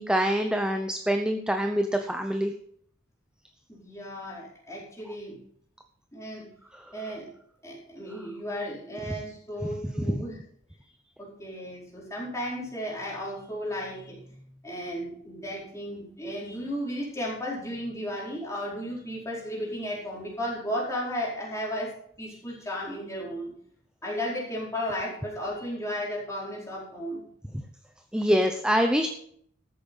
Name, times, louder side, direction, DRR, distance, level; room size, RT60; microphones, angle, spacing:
voice 1, 0.0-2.5 6.7-6.9 9.8-10.2 28.1-29.1, equal, 5° right, 5 dB, 0.7 m, -25 dB
voice 2, 3.7-5.4 6.1-6.5 6.9-7.3 7.6-10.4 11.2-21.9 22.2-23.5 24.0-27.2, equal, 15° left, -4 dB, 4.7 m, -34 dB
13.5 x 8.5 x 5.5 m, 0.65 s
head